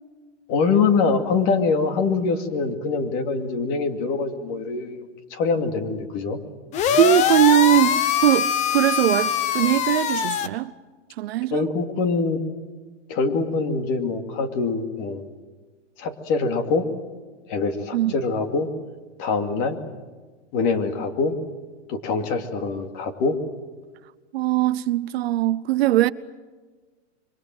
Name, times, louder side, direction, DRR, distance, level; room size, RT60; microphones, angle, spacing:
voice 1, 0.5-6.4 11.5-12.4 13.1-15.2 16.0-16.8 17.5-18.7 19.2-19.8 20.5-21.3 21.9-23.4, left 4 dB, 35° left, 2.5 m, -24 dB
sound 1, 6.7-10.5, left 8 dB, 20° left, 0.8 m, -22 dB
voice 2, 6.9-10.7 11.2-11.7 17.9-18.1 24.3-26.1, right 15 dB, 55° right, 0.8 m, -20 dB
26.5 x 24.0 x 7.8 m
supercardioid pair, 155°, 37 cm